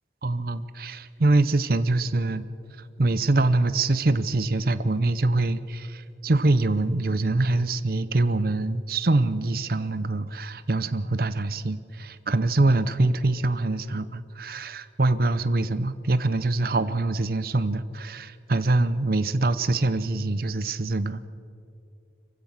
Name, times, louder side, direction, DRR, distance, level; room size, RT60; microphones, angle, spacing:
voice 1, 0.2-2.4 3.0-21.3, right 2 dB, 55° right, 14 dB, 0.7 m, -24 dB
25.5 x 15.5 x 7.3 m, 2.5 s
head